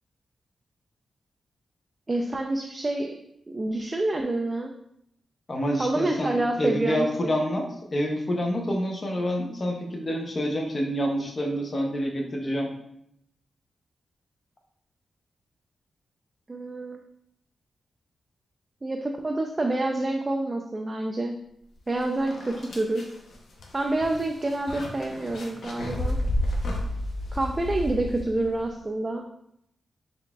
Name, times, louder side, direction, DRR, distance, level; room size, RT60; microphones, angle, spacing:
voice 1, 2.1-3.2 3.5-4.7 5.8-7.3 16.5-17.0 18.8-21.4 21.9-23.1 23.7-26.2 27.3-29.2, right 2 dB, 30° right, 3 dB, 0.3 m, -27 dB
voice 2, 5.5-12.7, equal, 40° left, 1 dB, 0.7 m, -27 dB
sound 1, 21.8-21.9 22.3-28.6, left 1 dB, 75° left, 0.6 m, -31 dB
3.8 x 3.5 x 2.3 m, 0.75 s
cardioid pair, 80°, 0 cm